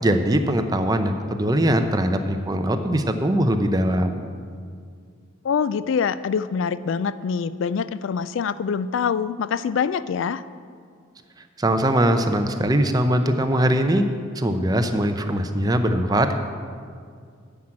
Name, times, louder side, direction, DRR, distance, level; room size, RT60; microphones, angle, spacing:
voice 1, 0.0-4.2 11.6-14.0 14.4-16.3, right 1 dB, 20° right, 7 dB, 0.6 m, -21 dB
voice 2, 5.4-10.4, left 6 dB, 65° left, 15 dB, 0.3 m, -25 dB
10.0 x 6.0 x 8.7 m, 2.2 s
head